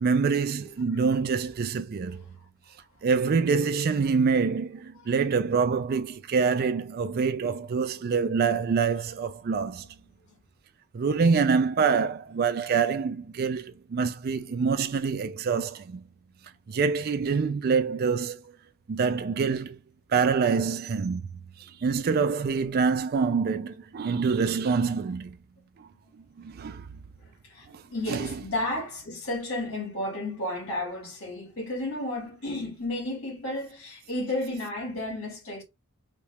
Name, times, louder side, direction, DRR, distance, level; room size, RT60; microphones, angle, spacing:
voice 1, 0.0-2.2 3.0-9.9 10.9-16.0 16.7-18.4 18.9-19.8 20.1-21.2 21.8-25.4 25.8-25.9 26.4-26.9 27.7-27.8 28.1-28.3, right 5 dB, 45° right, 0.4 m, -26 dB
voice 2, 27.2-35.6, left 1 dB, 80° left, 2.1 m, -33 dB
4.2 x 2.4 x 3.3 m
head